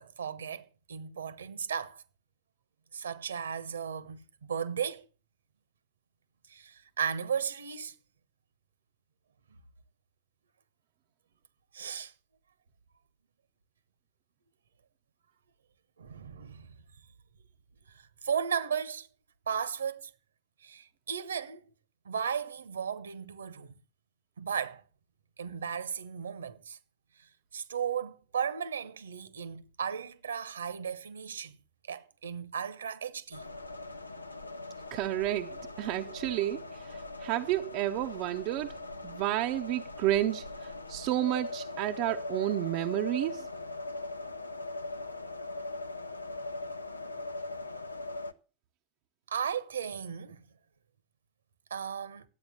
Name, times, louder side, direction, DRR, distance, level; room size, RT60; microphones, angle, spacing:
voice 1, 0.0-2.0 2.9-5.0 6.5-7.9 11.7-12.1 16.0-16.7 17.9-19.1 19.5-20.1 20.6-21.6 22.0-23.7 24.4-24.8 25.4-26.8 27.5-31.6 31.9-33.4 49.3-50.4 51.7-52.2, right 7 dB, 70° right, 1.2 m, -35 dB
sound 1, 33.3-48.3, left 2 dB, 85° left, 0.7 m, -40 dB
voice 2, 34.9-38.8 39.0-43.5, right 14 dB, 45° right, 0.8 m, -31 dB
12.0 x 8.7 x 7.6 m
figure-of-eight pair, 90°, 0 cm